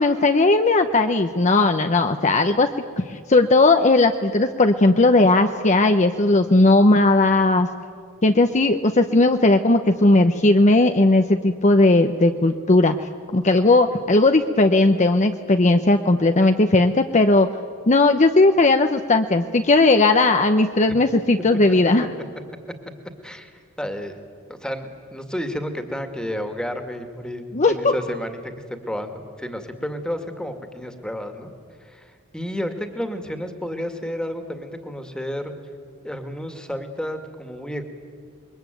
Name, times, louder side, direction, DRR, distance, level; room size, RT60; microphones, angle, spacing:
voice 1, 0.0-2.7 3.0-7.7 8.2-17.5 17.9-22.1 27.5-27.9, left 2 dB, 35° left, 7 dB, 0.8 m, -17 dB
voice 2, 23.2-24.2 24.5-31.5 31.8-35.5 36.0-37.9, equal, 5° left, 7 dB, 2.1 m, -31 dB
27.5 x 22.5 x 9.2 m, 2.1 s
head